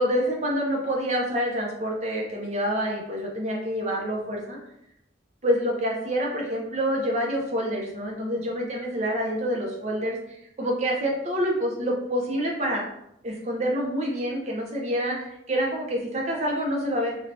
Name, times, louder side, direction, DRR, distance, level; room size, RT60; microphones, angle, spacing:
voice 1, 0.0-4.6 5.4-12.8 13.2-17.2, equal, 35° right, -1 dB, 0.6 m, -27 dB
2.6 x 2.3 x 3.2 m, 0.78 s
head